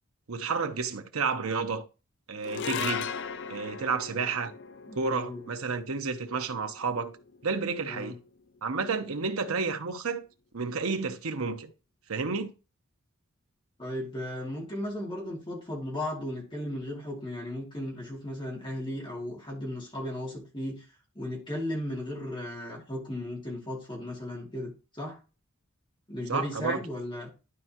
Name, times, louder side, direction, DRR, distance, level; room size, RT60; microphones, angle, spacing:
voice 1, 0.3-1.8 2.3-3.1 3.5-4.5 4.9-7.1 7.4-8.2 8.6-10.2 10.5-11.7 12.1-12.5 26.3-26.8, right 4 dB, 85° right, 0.9 m, -31 dB
sound 1, 2.4-8.9, left 7 dB, 55° left, 0.4 m, -39 dB
voice 2, 4.9-5.4 7.8-8.1 13.8-20.8 21.1-25.2 26.1-27.3, left 1 dB, 25° left, 2.6 m, -36 dB
12.0 x 4.5 x 3.0 m
head